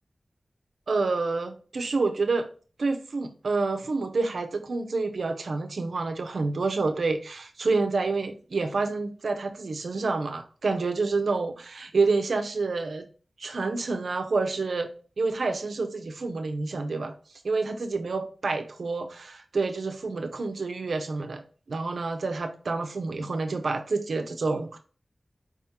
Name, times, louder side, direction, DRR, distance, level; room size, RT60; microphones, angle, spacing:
voice 1, 0.9-2.5 2.8-13.1 13.4-14.9 15.2-17.1 17.4-21.4 21.7-24.8, right 3 dB, 80° right, 6 dB, 0.5 m, -28 dB
4.8 x 3.6 x 2.8 m, 0.40 s
wide cardioid pair, 70°, 0 cm